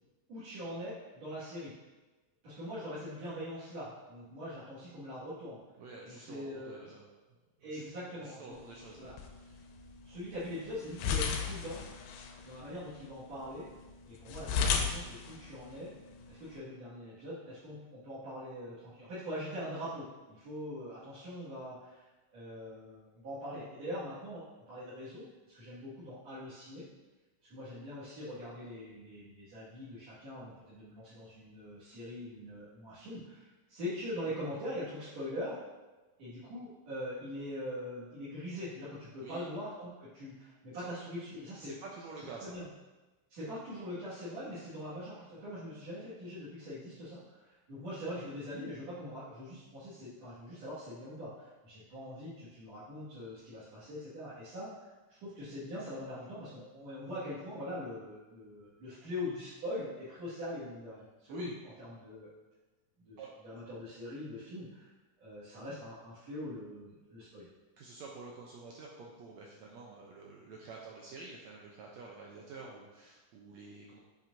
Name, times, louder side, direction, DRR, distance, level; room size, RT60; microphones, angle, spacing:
voice 1, 0.3-1.7 2.4-5.6 6.0-6.9 7.6-8.5 9.0-9.2 10.0-11.8 12.4-13.7 14.1-15.9 16.3-25.3 25.5-26.8 27.5-35.6 36.2-41.7 42.2-42.7 43.3-61.5 61.8-62.3 63.0-64.9 65.2-67.5, left 1 dB, 55° right, -13 dB, 2.8 m, -42 dB
voice 2, 5.8-7.0 7.6-7.8 8.2-9.6 39.2-39.4 41.6-42.6 61.3-61.5 63.2-63.3 67.8-74.0, right 4 dB, 85° right, -2 dB, 1.5 m, -49 dB
sound 1, 8.5-16.6, left 6 dB, 90° left, 2.3 m, -37 dB
7.3 x 5.9 x 2.6 m, 1.2 s
omnidirectional pair, 3.9 m